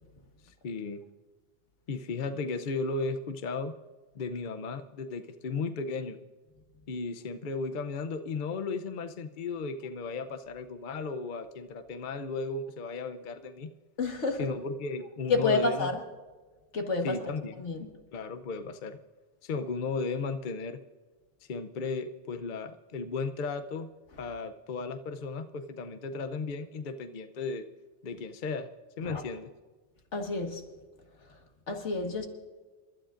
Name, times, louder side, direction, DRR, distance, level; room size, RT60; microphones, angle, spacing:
voice 1, 0.4-1.0 1.9-3.7 4.1-6.2 6.9-13.7 14.4-15.9 17.0-17.6 18.1-19.0 19.4-20.8 21.5-23.9 24.2-27.6 28.0-28.7 29.0-29.5, left 4 dB, 50° left, 0.8 m, -35 dB
voice 2, 14.0-14.5 15.3-16.0 16.7-17.3 17.6-17.9 29.0-29.2 30.1-30.6 31.3-31.4 31.7-32.3, left 3 dB, 85° left, 2.0 m, -29 dB
28.5 x 13.0 x 2.5 m
omnidirectional pair, 1.2 m